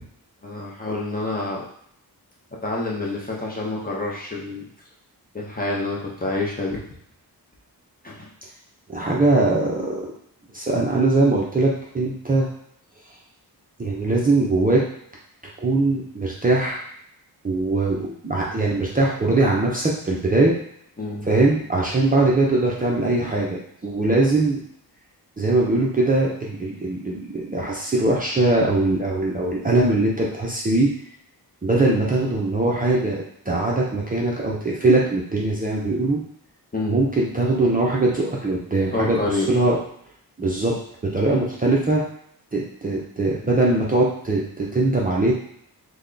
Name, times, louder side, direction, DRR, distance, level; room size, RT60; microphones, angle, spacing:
voice 1, 0.4-1.7 2.5-4.6 5.3-6.8 8.0-8.3 21.0-21.3 36.7-37.0 38.9-39.5, left 2 dB, 25° left, -3 dB, 0.6 m, -27 dB
voice 2, 8.9-10.1 10.5-12.5 13.8-14.8 15.6-16.8 17.4-20.5 21.3-24.6 25.4-30.9 31.6-36.2 36.9-39.2 39.5-39.8 40.4-40.8 41.0-42.0 42.5-45.3, right 2 dB, 20° right, -4 dB, 0.5 m, -21 dB
3.4 x 2.2 x 3.7 m, 0.68 s
wide cardioid pair, 160°, 39 cm